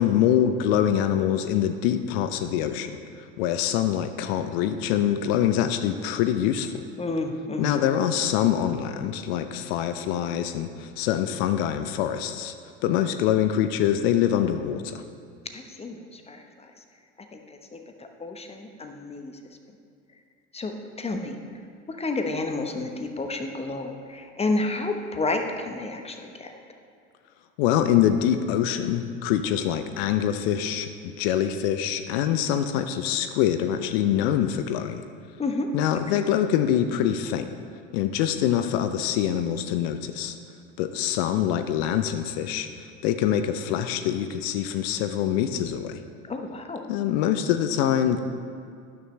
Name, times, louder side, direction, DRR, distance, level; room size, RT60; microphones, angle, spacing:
voice 1, 0.0-2.9 3.4-6.8 7.6-12.5 12.8-15.0 27.6-35.0 35.7-37.5 37.9-40.4 40.8-46.0 46.9-48.2, left 10 dB, 55° left, 9 dB, 0.7 m, -24 dB
voice 2, 7.0-7.8 15.5-16.7 17.2-19.4 20.5-21.4 21.9-26.5 35.4-35.7 35.9-36.0 46.2-46.9, left 2 dB, 15° left, 5 dB, 0.9 m, -31 dB
12.0 x 9.6 x 3.2 m, 2.3 s
figure-of-eight pair, 75°, 36 cm